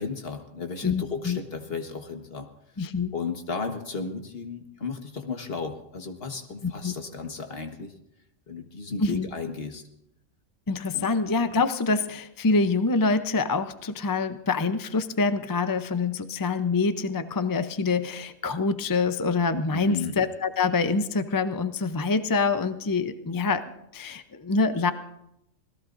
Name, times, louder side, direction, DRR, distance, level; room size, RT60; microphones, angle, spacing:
voice 1, 0.0-2.5 3.1-7.9 8.5-9.8 10.9-11.1 19.7-20.2, left 4 dB, 50° left, 5 dB, 1.5 m, -34 dB
voice 2, 0.8-1.4 2.8-3.1 6.6-6.9 9.0-9.3 10.7-23.6 23.9-24.9, left 4 dB, 30° left, 10 dB, 0.4 m, -25 dB
26.0 x 17.5 x 2.6 m, 0.80 s
omnidirectional pair, 1.3 m